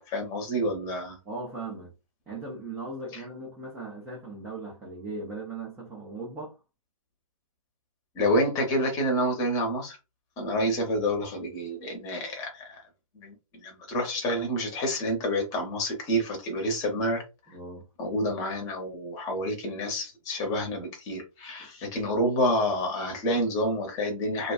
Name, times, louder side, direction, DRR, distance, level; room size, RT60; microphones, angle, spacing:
voice 1, 0.0-1.2 3.1-3.2 8.1-10.0 10.4-12.7 13.1-17.6 18.0-24.5, equal, 20° left, 0.7 m, -28 dB
voice 2, 1.3-1.9 2.3-6.6 17.5-17.9 21.6-21.7, right 3 dB, 5° right, 0.3 m, -38 dB
2.4 x 2.2 x 2.3 m
hypercardioid pair, 140°, 19 cm